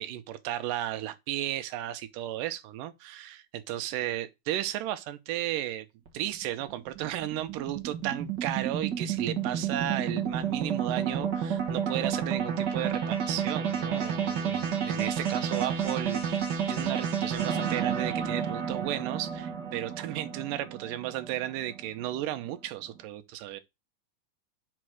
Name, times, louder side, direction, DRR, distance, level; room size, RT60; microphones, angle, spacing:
voice 1, 0.0-5.9 6.1-16.4 16.7-23.6, right 13 dB, 85° right, 2.4 m, -34 dB
sound 1, 6.1-22.4, right 7 dB, 50° right, 1.3 m, -31 dB
5.8 x 4.4 x 6.3 m
omnidirectional pair, 3.7 m